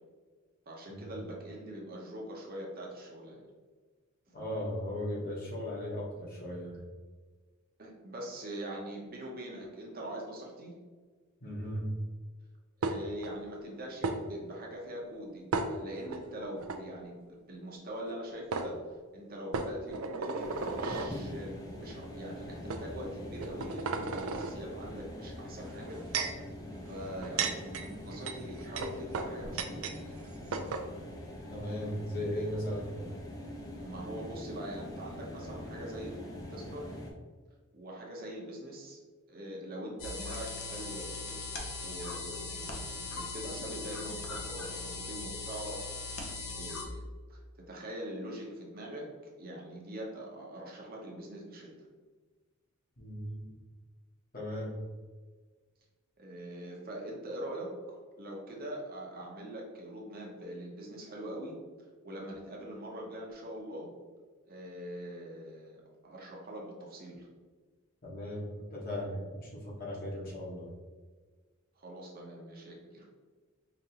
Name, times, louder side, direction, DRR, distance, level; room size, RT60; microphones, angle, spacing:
voice 1, 0.7-3.5 7.8-10.7 12.8-26.0 26.9-29.9 33.8-36.1 36.5-37.0 37.7-39.0 39.3-46.0 46.4-47.0 47.3-47.4 47.7-49.1 49.4-51.9 56.2-63.9 64.5-67.3 71.8-73.1, right 1 dB, 45° right, -2 dB, 0.8 m, -43 dB
voice 2, 4.3-6.8 11.4-12.0 31.5-32.9 53.0-53.6 54.3-54.8 68.0-70.7, equal, 45° left, -5 dB, 1.2 m, -37 dB
sound 1, 12.8-13.3 14.0-14.2 15.5-16.2 16.6-16.8 18.1-18.2 18.5-18.7 19.5-21.1 21.9-22.1 22.7-22.8 23.4-24.5 25.6-26.4 27.1-30.0 30.2-30.3 30.5-30.9, right 4 dB, 75° right, 0.4 m, -34 dB
sound 2, 20.4-37.1, left 1 dB, 15° left, 0.5 m, -44 dB
sound 3, 40.0-46.8, left 3 dB, 75° left, 0.7 m, -39 dB
5.0 x 2.6 x 2.8 m, 1.4 s
head